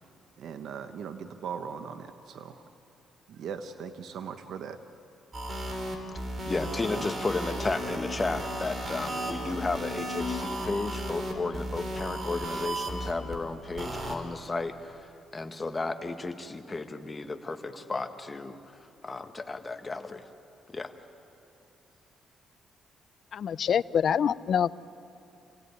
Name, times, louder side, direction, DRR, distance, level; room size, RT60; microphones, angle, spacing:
voice 1, 0.4-2.6 3.3-4.8, right 7 dB, 70° right, 8 dB, 1.1 m, -39 dB
sound 1, 5.3-13.4 13.8-14.2, equal, 40° right, 3.8 m, -34 dB
voice 2, 6.4-15.0 15.3-18.6 19.0-20.2 20.7-20.9, left 3 dB, 25° left, 7 dB, 1.5 m, -33 dB
voice 3, 23.3-24.7, left 8 dB, 60° left, 17 dB, 0.5 m, -25 dB
27.5 x 17.0 x 9.6 m, 2.7 s
cardioid pair, 90°, 0 cm